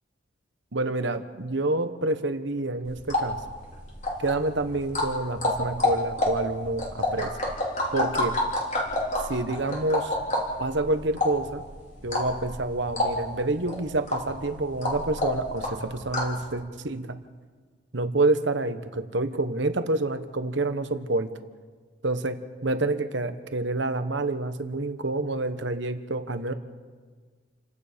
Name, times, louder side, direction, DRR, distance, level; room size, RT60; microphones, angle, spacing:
voice 1, 0.7-3.4 4.2-7.3 7.9-8.4 9.2-10.2 10.6-11.6 12.0-17.2 17.9-21.3 22.0-26.5, right 2 dB, 65° right, 9 dB, 1.2 m, -28 dB
sound 1, 2.9-16.4, left 1 dB, 35° left, 4.0 m, -29 dB
29.5 x 17.0 x 5.2 m, 1.5 s
head